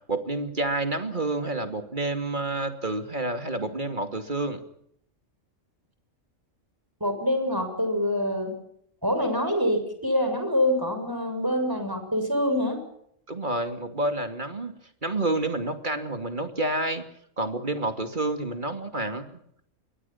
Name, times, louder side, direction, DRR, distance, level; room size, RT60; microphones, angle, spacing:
voice 1, 0.1-4.6 13.3-14.7 15.0-17.1 17.4-19.4, right 2 dB, 35° right, 7 dB, 2.8 m, -29 dB
voice 2, 7.0-8.5 9.0-12.8, left 1 dB, 15° right, 5 dB, 7.1 m, -25 dB
27.5 x 23.0 x 5.8 m, 0.70 s
omnidirectional pair, 1.4 m